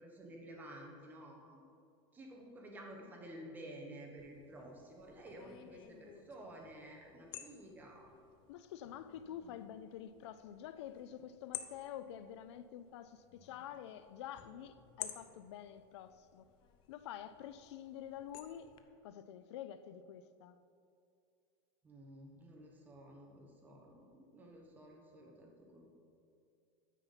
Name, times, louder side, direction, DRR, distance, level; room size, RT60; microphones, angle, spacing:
voice 1, 0.0-1.6 2.1-8.1 21.8-25.9, right 1 dB, 10° right, 1.1 m, -52 dB
sound 1, 4.2-18.8, left 11 dB, 35° left, 0.5 m, -54 dB
voice 2, 8.5-16.5 16.9-18.7 19.0-20.6, left 10 dB, 85° left, 0.4 m, -48 dB
9.1 x 5.7 x 5.6 m
supercardioid pair, 160°, 14 cm